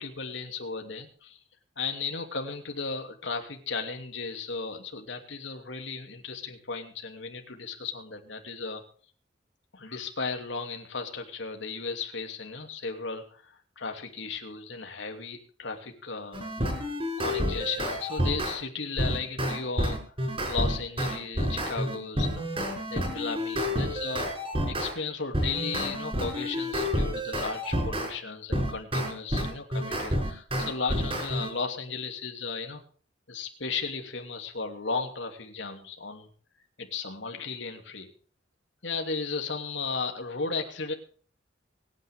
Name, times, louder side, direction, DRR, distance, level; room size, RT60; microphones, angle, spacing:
voice 1, 0.0-1.4 1.8-8.8 9.7-16.5 16.9-20.1 20.4-22.5 22.9-24.3 24.7-32.8 33.3-36.3 36.8-38.1 38.8-40.9, left 4 dB, 90° left, 4 dB, 2.8 m, -35 dB
sound 1, 16.3-18.6 19.0-24.9 25.3-28.1 28.5-31.5, equal, 30° right, 5.6 m, -29 dB
24.5 x 9.7 x 3.6 m, 0.43 s
head